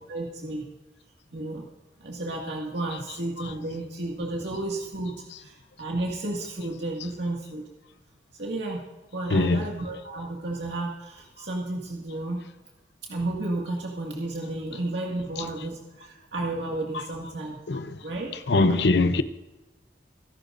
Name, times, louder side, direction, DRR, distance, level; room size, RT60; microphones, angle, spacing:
voice 1, 0.1-0.6 1.3-1.6 2.0-7.6 8.4-8.8 9.1-12.4 13.0-17.6 18.0-18.3 18.6-18.7, right 2 dB, 85° right, 2.1 m, -32 dB
voice 2, 9.3-9.7 15.4-15.5 16.9-17.0 17.7-18.0 18.3-19.2, left 3 dB, 75° left, 0.8 m, -23 dB
24.0 x 12.0 x 2.6 m
head